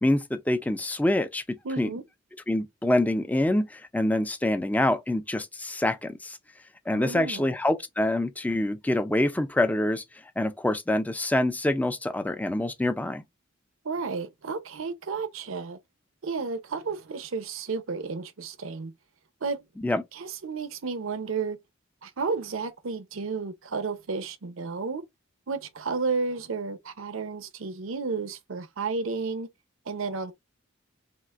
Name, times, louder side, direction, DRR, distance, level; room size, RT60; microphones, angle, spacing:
voice 1, 0.0-1.4 1.8-1.9 2.5-6.4 6.9-10.0 10.4-13.2 19.8-20.0, left 1 dB, 5° left, 0.3 m, -26 dB
voice 2, 1.6-2.0 6.9-7.5 13.8-15.8 16.2-18.9 19.4-19.6 20.1-21.6 22.0-25.0 25.5-29.5 29.9-30.3, right 4 dB, 75° right, 0.7 m, -32 dB
5.8 x 2.5 x 2.4 m
head